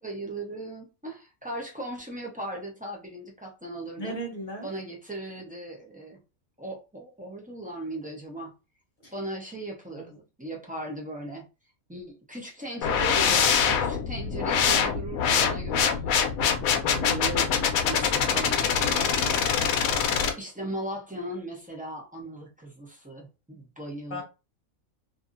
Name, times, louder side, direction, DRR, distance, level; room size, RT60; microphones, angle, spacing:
voice 1, 0.0-4.2 4.6-6.2 6.6-8.5 9.1-11.4 11.9-16.4 16.8-19.2 19.5-19.6 20.4-24.2, right 1 dB, 10° right, 0.4 m, -38 dB
voice 2, 4.0-4.7 9.0-9.1 10.0-10.2 16.8-17.2 18.1-19.3 24.1-24.2, right 1 dB, 45° left, 0.8 m, -38 dB
sound 1, 12.8-20.3, left 7 dB, 80° left, 1.0 m, -24 dB
2.7 x 2.6 x 2.5 m
omnidirectional pair, 1.5 m